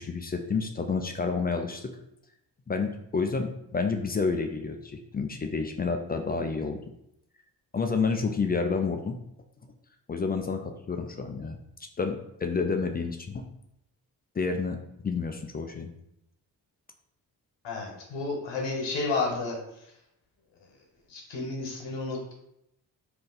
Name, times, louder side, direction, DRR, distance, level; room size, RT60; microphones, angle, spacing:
voice 1, 0.0-1.9 2.7-6.8 7.7-9.2 10.1-11.6 12.0-13.5 14.4-15.9, left 4 dB, 25° left, 5 dB, 0.3 m, -29 dB
voice 2, 17.6-19.6 21.1-22.3, left 3 dB, 70° left, -1 dB, 1.0 m, -31 dB
2.6 x 2.3 x 3.9 m, 0.79 s
supercardioid pair, 45°, 44 cm